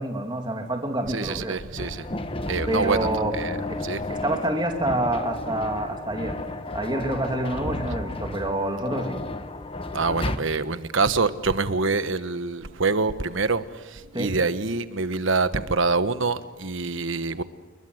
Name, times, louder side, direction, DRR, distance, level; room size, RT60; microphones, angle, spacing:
voice 1, 0.0-1.6 2.7-3.3 3.7-3.8 4.1-6.4 6.7-9.2 14.1-14.3, right 1 dB, 20° right, 3 dB, 2.9 m, -27 dB
voice 2, 1.1-2.1 2.5-3.0 3.3-3.6 3.8-4.0 9.9-17.4, right 3 dB, 65° right, 12 dB, 1.2 m, -25 dB
sound 1, 1.8-10.4, left 2 dB, 25° left, 1.2 m, -32 dB
29.0 x 22.0 x 8.0 m, 1.2 s
head